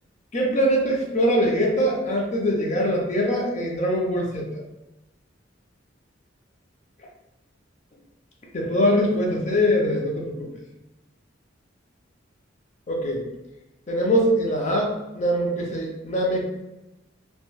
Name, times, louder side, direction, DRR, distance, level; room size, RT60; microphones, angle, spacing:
voice 1, 0.3-4.5 8.5-10.5 12.9-13.2 13.9-16.5, equal, 40° left, -1 dB, 0.5 m, -23 dB
2.3 x 2.1 x 3.1 m, 0.97 s
head